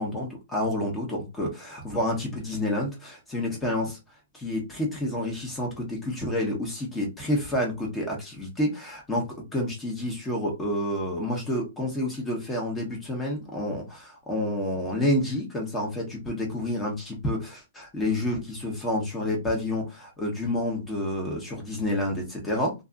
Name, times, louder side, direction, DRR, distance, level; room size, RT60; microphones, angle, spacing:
voice 1, 0.0-4.0 4.3-22.7, left 1 dB, 10° left, 0.9 m, -29 dB
2.6 x 2.5 x 2.3 m
hypercardioid pair, 145°, 0 cm